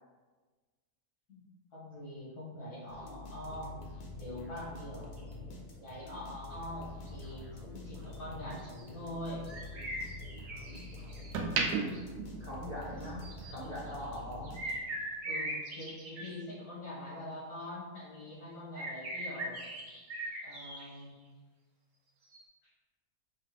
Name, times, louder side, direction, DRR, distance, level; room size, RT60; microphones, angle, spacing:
voice 1, 1.7-3.7 4.1-5.1 5.8-9.5 15.2-19.6 20.4-21.2, left 1 dB, 80° left, -8 dB, 2.2 m, -44 dB
sound 1, 2.9-15.1, left 2 dB, 45° left, 0.7 m, -46 dB
sound 2, 5.2-5.3 7.1-7.3 8.1-8.2 8.6-8.9 9.5-11.4 11.8-12.0 13.0-14.2 14.4-16.3 18.8-21.0 22.3-22.4, right 1 dB, 60° right, 1.2 m, -41 dB
sound 3, 6.5-8.8 9.2-10.7 11.1-13.2 13.5-13.8, right 4 dB, 85° right, 1.1 m, -36 dB
voice 2, 12.4-14.6, equal, 45° right, -7 dB, 0.5 m, -42 dB
5.4 x 2.4 x 3.2 m, 1.3 s
omnidirectional pair, 1.6 m